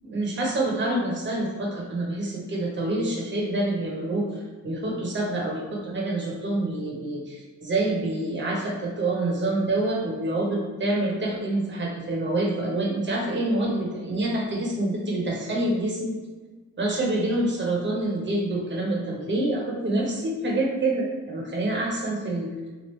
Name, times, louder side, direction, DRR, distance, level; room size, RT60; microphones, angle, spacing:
voice 1, 0.0-16.2 16.8-22.5, right 2 dB, 40° right, -2 dB, 1.1 m, -27 dB
3.1 x 2.3 x 3.2 m, 1.3 s
cardioid pair, 90°, 30 cm